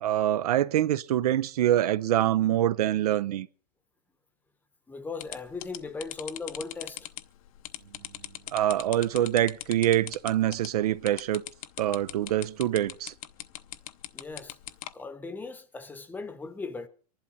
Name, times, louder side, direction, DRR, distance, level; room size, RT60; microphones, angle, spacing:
voice 1, 0.0-3.5 8.5-11.4 11.8-13.1, right 12 dB, 70° right, 0.6 m, -25 dB
voice 2, 4.9-7.1 14.1-14.6 14.9-16.9, left 4 dB, 10° left, 0.9 m, -38 dB
sound 1, 5.2-14.9, left 14 dB, 60° left, 0.8 m, -40 dB
24.5 x 11.5 x 4.1 m
hypercardioid pair, 140°, 20 cm